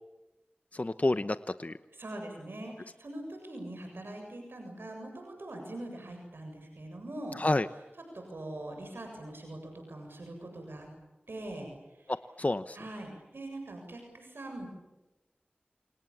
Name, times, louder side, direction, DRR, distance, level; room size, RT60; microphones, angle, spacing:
voice 1, 0.7-1.8 7.4-7.7 12.1-12.8, left 2 dB, 40° left, 11 dB, 0.9 m, -29 dB
voice 2, 2.0-7.4 8.1-10.9 11.3-12.1 12.7-14.7, right 1 dB, 90° right, 3 dB, 7.5 m, -42 dB
29.5 x 27.0 x 7.2 m, 1.0 s
wide cardioid pair, 45°, 4 cm